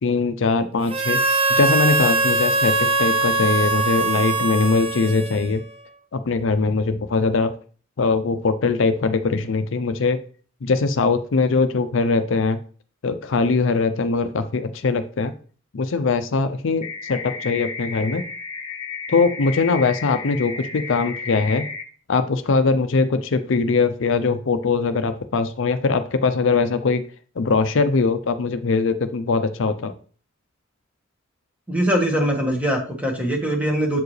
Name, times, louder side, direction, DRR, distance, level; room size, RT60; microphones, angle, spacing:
voice 1, 0.0-1.2 1.6-5.6 6.1-7.5 8.0-10.2 10.6-12.6 13.0-15.3 15.7-18.2 19.1-21.7 22.1-27.0 27.4-29.9, left 4 dB, 65° left, 10 dB, 0.5 m, -21 dB
Harmonica, 0.9-5.7, right 2 dB, 30° right, 0.6 m, -21 dB
sound 1, 16.8-21.8, left 5 dB, 30° left, 1.0 m, -33 dB
voice 2, 31.7-34.0, equal, 5° right, 1 dB, 1.4 m, -22 dB
7.6 x 4.7 x 3.2 m, 0.41 s
head